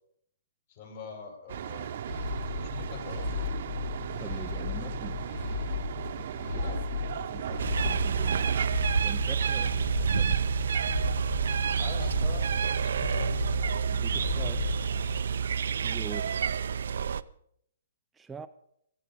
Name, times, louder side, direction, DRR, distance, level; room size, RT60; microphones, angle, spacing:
voice 1, 0.7-1.9 2.3-3.6 6.5-6.8 9.5-9.8 11.8-13.4 14.6-14.7 16.0-16.1, left 5 dB, 50° left, 7.6 m, -44 dB
sound 1, 1.5-8.7, right 9 dB, 60° right, 0.9 m, -37 dB
sound 2, 2.1-15.2, left 5 dB, 70° left, 2.2 m, -35 dB
voice 2, 4.2-5.2 7.3-8.5 9.0-10.4 13.9-14.7 15.8-16.2 18.1-18.5, right 6 dB, 10° right, 0.5 m, -44 dB
sound 3, 7.6-17.2, right 7 dB, 75° right, 0.6 m, -28 dB
16.0 x 15.0 x 5.1 m
hypercardioid pair, 150°, 0 cm